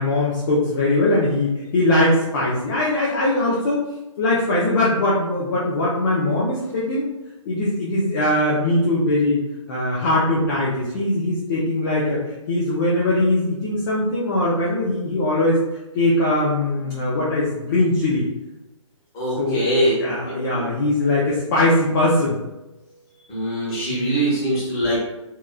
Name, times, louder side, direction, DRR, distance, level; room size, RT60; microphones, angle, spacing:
voice 1, 0.0-3.9 4.2-7.1 7.4-9.4 9.7-12.2 12.5-15.6 15.9-18.3 19.4-19.6 20.0-22.4 23.9-24.1, left 1 dB, 40° left, -7 dB, 0.6 m, -21 dB
voice 2, 19.1-19.9 20.3-20.7 23.3-25.0, right 1 dB, 20° left, -8 dB, 1.3 m, -22 dB
2.9 x 2.4 x 2.3 m, 0.98 s
hypercardioid pair, 145°, 17 cm